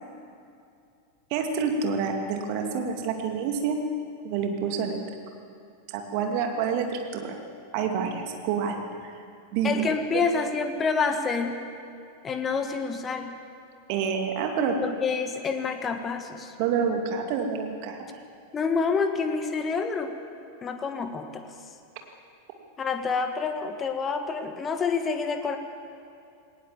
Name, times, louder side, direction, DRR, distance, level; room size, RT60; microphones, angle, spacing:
voice 1, 1.3-3.8 4.2-5.0 5.9-7.4 7.7-9.1 9.5-9.8 10.1-10.3 13.9-14.8 16.6-18.1, right 6 dB, 45° right, 4 dB, 2.6 m, -28 dB
voice 2, 9.6-11.6 12.2-13.4 14.8-16.5 18.5-20.1 20.6-21.4 22.8-25.6, left 5 dB, 20° left, 7 dB, 1.6 m, -28 dB
19.0 x 19.0 x 7.4 m, 2.5 s
figure-of-eight pair, 90°, 0 cm